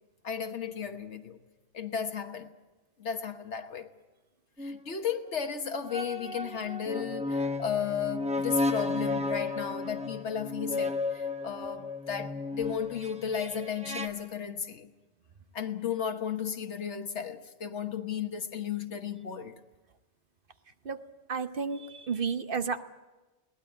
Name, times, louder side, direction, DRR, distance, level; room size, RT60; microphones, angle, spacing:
voice 1, 0.2-1.4 1.7-2.5 3.0-3.9 4.6-14.9 15.5-19.6, left 8 dB, 75° left, 1.6 m, -34 dB
sound 1, 4.6-4.8 5.9-14.1, left 3 dB, 5° right, 1.0 m, -33 dB
voice 2, 21.3-22.8, right 5 dB, 50° right, 1.1 m, -32 dB
21.5 x 18.0 x 9.0 m
omnidirectional pair, 1.2 m